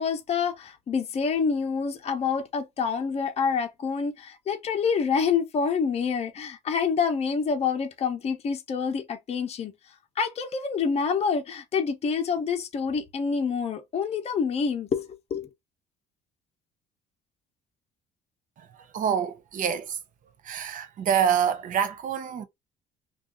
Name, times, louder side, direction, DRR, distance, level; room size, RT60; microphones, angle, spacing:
voice 1, 0.0-9.7 10.2-15.5, left 6 dB, 40° left, 0.8 m, -27 dB
voice 2, 18.9-20.0 20.5-22.4, right 8 dB, 50° right, 0.7 m, -26 dB
2.6 x 2.4 x 3.7 m
cardioid pair, 110°, 17 cm